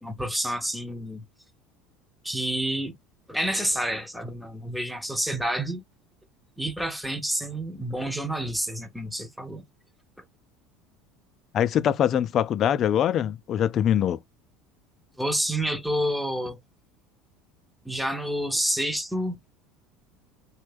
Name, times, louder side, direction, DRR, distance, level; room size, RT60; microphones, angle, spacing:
voice 1, 0.0-1.2 2.2-2.9 3.3-5.8 6.6-9.6 15.2-16.6 17.9-19.4, right 1 dB, ahead, 0.6 m, -29 dB
voice 2, 11.5-14.2, left 10 dB, 40° left, 0.3 m, -23 dB
3.1 x 2.1 x 3.3 m
supercardioid pair, 125°, 0 cm